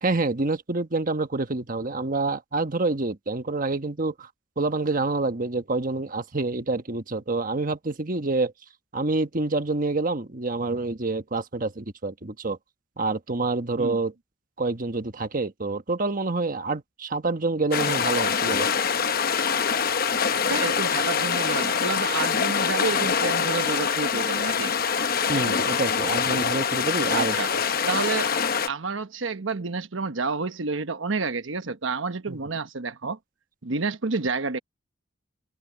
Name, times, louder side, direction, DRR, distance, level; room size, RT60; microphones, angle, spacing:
voice 1, 0.0-4.3 4.6-8.5 8.9-12.6 13.0-14.1 14.6-18.7 25.3-27.6 32.3-32.4, right 3 dB, 45° right, 1.2 m, -27 dB
sound 1, 17.7-28.7, left 6 dB, 50° left, 0.9 m, -24 dB
voice 2, 20.5-24.7 27.1-27.5 27.9-28.3 28.7-33.2 33.6-34.6, right 4 dB, 75° right, 1.2 m, -29 dB
head